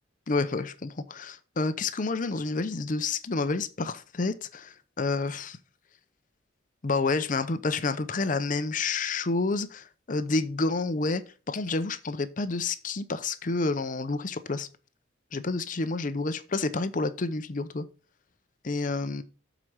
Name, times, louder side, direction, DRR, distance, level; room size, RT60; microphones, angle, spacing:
voice 1, 0.3-5.6 6.8-11.2 11.5-14.7 15.3-17.9 18.6-19.2, left 3 dB, 40° left, 0.6 m, -29 dB
7.8 x 5.0 x 5.5 m
head